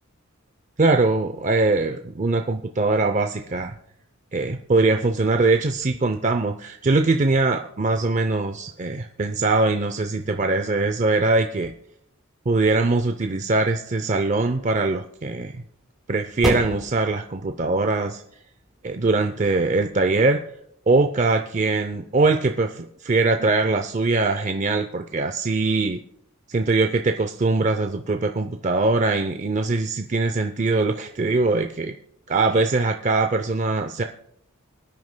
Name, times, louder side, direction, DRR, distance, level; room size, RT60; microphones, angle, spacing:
voice 1, 0.8-3.7 4.3-11.7 12.5-15.6 16.1-18.2 18.8-20.4 20.9-26.0 26.5-32.0 32.3-34.0, right 3 dB, 35° right, 6 dB, 0.5 m, -22 dB
sound 1, 14.6-21.1, equal, ahead, 3.7 m, -35 dB
25.0 x 9.5 x 2.2 m, 0.72 s
head